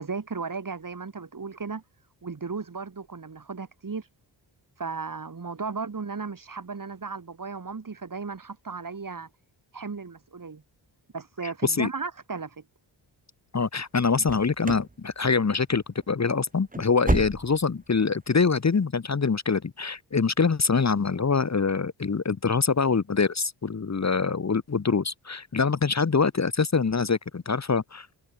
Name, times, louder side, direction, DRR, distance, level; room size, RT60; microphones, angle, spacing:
voice 1, 0.0-1.8 2.2-4.1 4.8-9.3 9.7-10.6 11.1-12.6, right 4 dB, 45° right, 5.2 m, -35 dB
voice 2, 11.4-11.9 13.5-28.1, left 5 dB, 35° left, 1.6 m, -24 dB
sound 1, 14.2-14.9 15.2-15.7 16.0-16.1 16.5-17.8 18.1-18.2 18.7-18.8, right 2 dB, 20° right, 2.6 m, -30 dB
cardioid pair, 80°, 45 cm